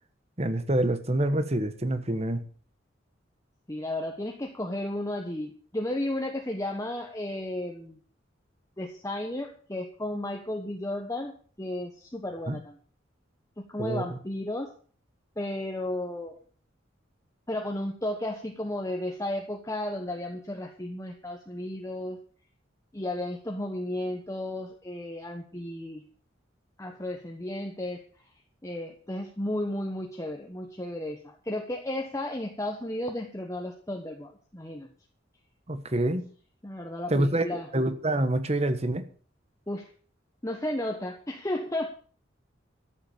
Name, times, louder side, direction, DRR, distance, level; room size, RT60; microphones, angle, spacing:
voice 1, 0.4-2.5 12.5-12.6 13.8-14.0 35.7-36.2 37.1-39.1, right 1 dB, 35° right, 10 dB, 1.3 m, -26 dB
voice 2, 3.7-8.0 8.8-12.8 13.6-14.7 15.4-16.4 17.5-22.2 22.9-26.0 26.8-28.0 28.6-34.9 36.6-37.7 39.7-39.9 40.4-41.9, left 1 dB, 15° left, 2 dB, 1.3 m, -33 dB
13.5 x 8.0 x 7.1 m, 0.44 s
head